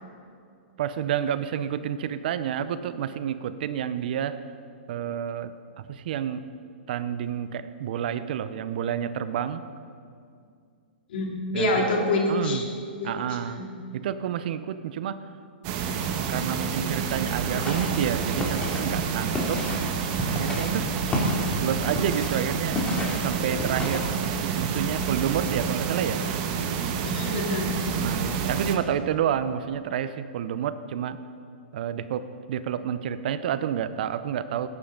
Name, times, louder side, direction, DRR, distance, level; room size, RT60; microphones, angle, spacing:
voice 1, 0.8-4.4 4.9-6.4 6.9-9.6 11.5-11.9 12.3-12.6 13.0-13.6 13.9-15.3 16.3-19.7 20.3-20.9 21.6-22.8 23.2-24.2 24.4-26.2 28.0-31.2 31.7-34.7, right 9 dB, 60° right, 13 dB, 0.7 m, -29 dB
voice 2, 11.1-12.6 13.0-13.7 27.0-27.7, left 2 dB, 65° left, -1 dB, 3.0 m, -27 dB
silence movie theater, 15.6-28.8, right 6 dB, 45° right, 1.2 m, -29 dB
sound 1, 17.5-24.2, left 1 dB, 15° left, 2.4 m, -32 dB
18.0 x 9.8 x 3.8 m, 2.3 s
hypercardioid pair, 120°, 6 cm